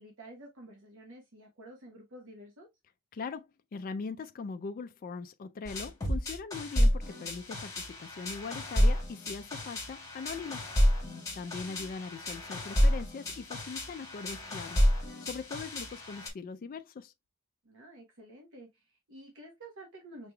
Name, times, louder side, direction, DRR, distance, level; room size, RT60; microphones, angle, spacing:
voice 1, 0.0-2.7 11.4-11.9 17.6-20.3, right 1 dB, 60° right, 1.0 m, -51 dB
voice 2, 3.1-3.5 3.7-10.6 11.4-14.9 15.2-17.1, left 5 dB, 40° left, 0.3 m, -41 dB
sound 1, 5.7-16.3, equal, 15° left, 1.6 m, -30 dB
5.8 x 3.2 x 2.2 m
head